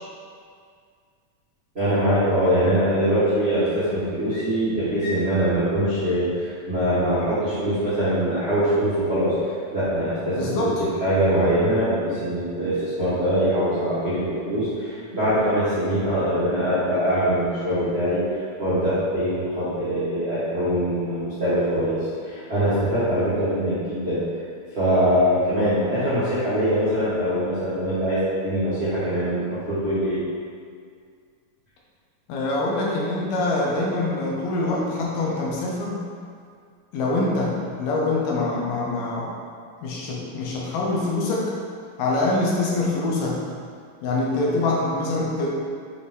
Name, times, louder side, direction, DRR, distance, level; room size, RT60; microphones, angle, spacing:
voice 1, 1.7-10.7 11.0-18.2 18.6-24.2 24.7-30.2, equal, 80° right, -14 dB, 0.5 m, -23 dB
voice 2, 10.3-10.9 32.3-36.0 36.9-39.3 39.8-41.5 42.0-43.4 44.0-45.5, left 2 dB, 75° left, -4 dB, 2.4 m, -24 dB
6.3 x 4.1 x 3.6 m, 2.1 s
omnidirectional pair, 4.0 m